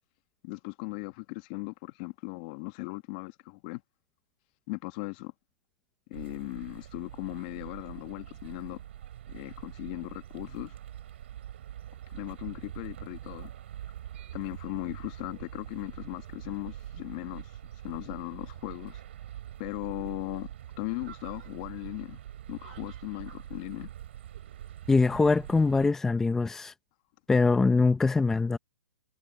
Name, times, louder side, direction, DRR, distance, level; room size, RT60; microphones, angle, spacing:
voice 1, 0.4-3.8 4.7-5.3 6.1-8.8 9.3-10.7 12.1-13.5 14.3-17.6 17.8-19.0 19.6-20.5 20.8-22.2 22.5-23.9, left 25 dB, 35° left, 1.7 m, -38 dB
sound 1, 6.1-25.9, right 11 dB, 60° right, 7.9 m, -44 dB
voice 2, 24.9-26.7 27.3-28.6, left 3 dB, 5° left, 0.8 m, -23 dB
hypercardioid pair, 145°, 7 cm